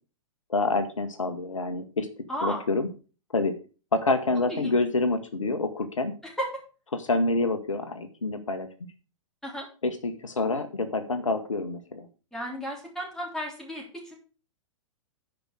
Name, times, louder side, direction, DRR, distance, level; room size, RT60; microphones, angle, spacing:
voice 1, 0.5-2.1 2.4-2.9 3.3-3.5 3.9-6.1 7.0-8.7 9.8-12.1, left 3 dB, 75° left, 9 dB, 1.2 m, -27 dB
voice 2, 2.3-2.7 4.5-4.7 6.4-6.5 9.4-9.7 12.3-14.1, equal, 5° left, -2 dB, 3.5 m, -33 dB
10.0 x 4.9 x 6.3 m, 0.36 s
figure-of-eight pair, 105°, 17 cm